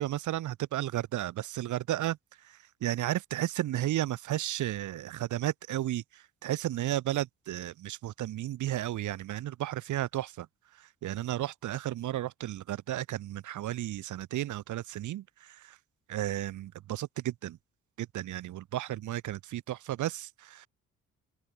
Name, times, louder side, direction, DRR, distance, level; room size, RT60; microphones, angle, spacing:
voice 1, 0.0-10.5 10.8-15.8 16.1-17.6 18.0-20.7, right 13 dB, 75° right, 1.6 m, -33 dB
open air
cardioid pair, 90°, 30 cm